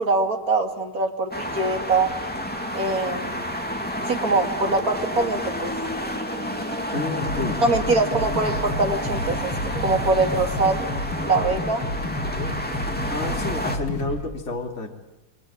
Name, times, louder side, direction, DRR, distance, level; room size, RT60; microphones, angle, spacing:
voice 1, 0.0-2.1 2.7-3.4 4.1-5.7 7.6-9.5 9.8-10.9 11.2-11.8, right 3 dB, 45° right, 4 dB, 3.0 m, -23 dB
sound 1, 1.3-13.8, equal, 5° left, 2.6 m, -30 dB
voice 2, 6.9-7.6 13.1-14.9, left 3 dB, 35° left, 1 dB, 3.0 m, -29 dB
sound 2, 7.0-14.2, left 1 dB, 75° left, 9.1 m, -30 dB
28.5 x 24.0 x 8.7 m, 0.93 s
omnidirectional pair, 2.2 m